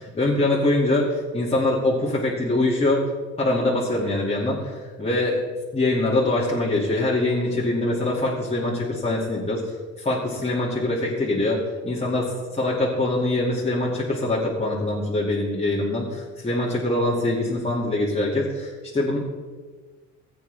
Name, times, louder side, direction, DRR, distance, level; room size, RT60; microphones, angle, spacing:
voice 1, 0.0-3.0 3.4-5.4 5.7-9.6 10.0-19.2, left 2 dB, 20° left, -5 dB, 2.4 m, -23 dB
15.5 x 8.5 x 3.5 m, 1.4 s
cardioid pair, 90°, 30 cm